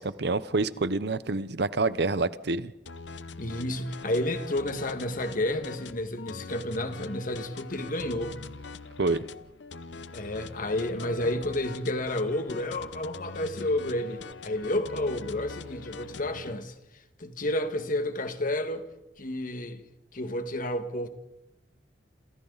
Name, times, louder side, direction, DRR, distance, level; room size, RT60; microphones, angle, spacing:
voice 1, 0.0-2.7 9.0-9.2, right 3 dB, 65° right, 0.9 m, -27 dB
sound 1, 2.9-16.6, left 4 dB, 85° left, 0.9 m, -43 dB
voice 2, 3.4-8.4 10.1-16.8 17.2-18.8 19.2-19.8 20.1-21.1, left 1 dB, 50° left, 1.8 m, -31 dB
28.5 x 27.5 x 4.1 m
head